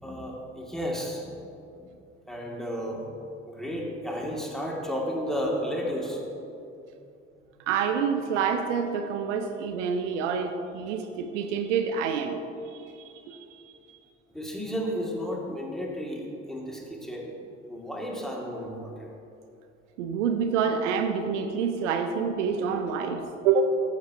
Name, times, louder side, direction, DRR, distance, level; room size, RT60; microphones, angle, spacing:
voice 1, 0.0-1.4 1.8-1.9 2.3-3.2 3.5-6.2 7.5-7.6 14.3-17.3 17.7-19.1, equal, ahead, -2 dB, 2.2 m, -33 dB
voice 2, 7.7-12.4 12.7-13.7 20.0-23.6, right 6 dB, 80° right, 6 dB, 0.6 m, -27 dB
14.5 x 7.4 x 2.8 m, 2.7 s
figure-of-eight pair, 45°, 36 cm